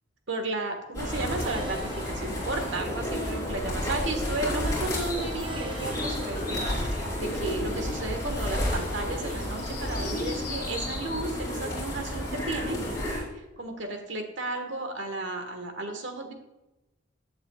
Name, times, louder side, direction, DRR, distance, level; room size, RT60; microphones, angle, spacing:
voice 1, 0.3-12.8 13.3-16.3, right 2 dB, 75° right, 5 dB, 1.6 m, -34 dB
sound 1, 0.9-13.2, left 1 dB, 20° left, 4.1 m, -31 dB
sound 2, 1.1-10.0, equal, 25° right, 0.9 m, -44 dB
15.0 x 8.6 x 2.4 m, 0.98 s
head